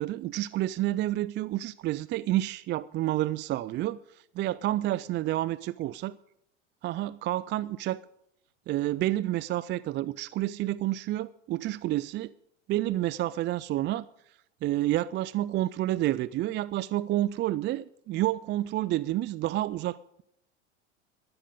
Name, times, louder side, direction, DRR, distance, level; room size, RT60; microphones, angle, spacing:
voice 1, 0.0-6.1 6.8-8.0 8.7-12.3 12.7-14.0 14.6-20.2, right 15 dB, 30° right, 18 dB, 0.4 m, -29 dB
15.5 x 12.0 x 5.2 m, 0.76 s
hypercardioid pair, 80°, 36 cm